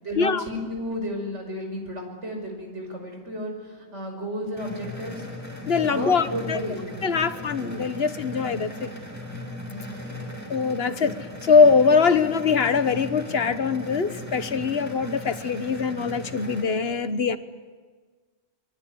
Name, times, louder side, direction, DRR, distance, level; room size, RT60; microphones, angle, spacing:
voice 1, 0.0-3.5 3.8-5.2 5.8-6.8 9.7-10.4, equal, 80° right, 3 dB, 6.2 m, -33 dB
sound 1, 4.6-16.6, equal, 15° right, 6.6 m, -37 dB
voice 2, 5.7-6.6 7.0-8.9 10.5-11.2 11.4-17.4, left 5 dB, 60° left, 11 dB, 1.5 m, -22 dB
25.0 x 23.0 x 9.9 m, 1.5 s
omnidirectional pair, 1.2 m